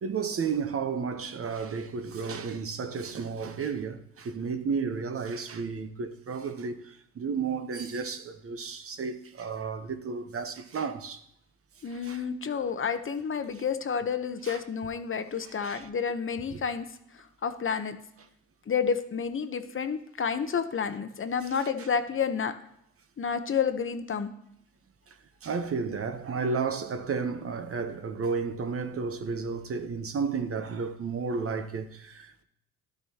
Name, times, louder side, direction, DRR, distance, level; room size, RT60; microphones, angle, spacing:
voice 1, 0.0-11.2 11.9-12.2 14.4-14.6 15.4-15.9 16.5-16.6 25.4-32.4, right 5 dB, 40° right, 1.0 m, -32 dB
voice 2, 11.8-16.9 17.4-18.0 18.7-22.5 23.2-24.3, left 6 dB, 35° left, 0.9 m, -30 dB
12.5 x 6.5 x 2.9 m
hypercardioid pair, 60°, 35 cm